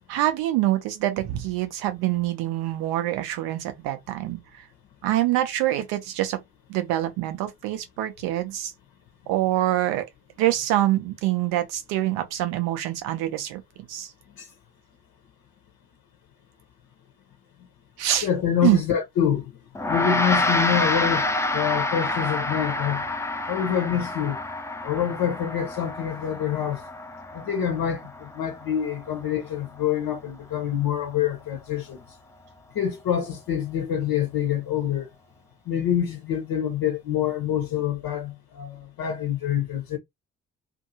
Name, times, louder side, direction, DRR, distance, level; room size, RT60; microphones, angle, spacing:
voice 1, 0.1-4.7 5.0-6.4 6.7-8.7 9.3-10.1 10.4-13.6 13.9-14.1 18.0-18.3 18.6-18.8, right 14 dB, 75° right, 0.8 m, -25 dB
voice 2, 18.2-19.5 19.9-21.3 21.5-23.0 23.5-24.4 24.8-26.8 27.3-32.0 32.7-35.1 35.7-40.0, left 9 dB, 65° left, 1.0 m, -26 dB
Gong, 19.7-29.4, left 2 dB, 5° left, 0.5 m, -28 dB
2.6 x 2.6 x 2.8 m
hypercardioid pair, 40°, 38 cm